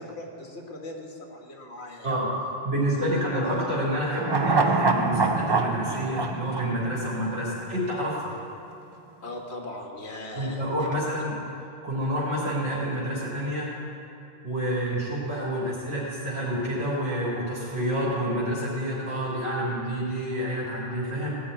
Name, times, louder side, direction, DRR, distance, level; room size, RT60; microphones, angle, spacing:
voice 1, 0.0-2.2 2.9-3.0 9.2-11.0, left 1 dB, 70° left, 0 dB, 2.0 m, -39 dB
voice 2, 2.6-8.3 10.4-11.4 11.8-13.7 14.4-21.3, equal, 85° right, -7 dB, 3.7 m, -28 dB
sound 1, 4.2-7.6 7.9-8.0, right 3 dB, 30° right, 0.5 m, -25 dB
17.0 x 5.8 x 9.4 m, 2.8 s
omnidirectional pair, 1.2 m